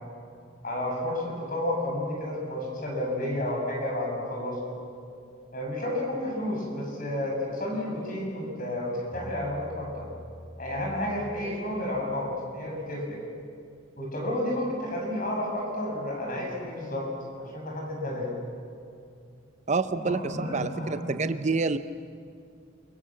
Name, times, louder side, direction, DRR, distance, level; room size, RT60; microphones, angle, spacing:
voice 1, 0.6-4.8 5.5-10.1 10.6-13.2 14.0-17.1 17.4-18.4 20.0-21.0, left 1 dB, 40° left, 0 dB, 7.2 m, -31 dB
Bass guitar, 9.1-12.5, left 1 dB, 5° right, 5.3 m, -47 dB
voice 2, 19.7-21.8, right 4 dB, 35° right, 11 dB, 0.6 m, -28 dB
28.0 x 24.0 x 7.7 m, 2.4 s
head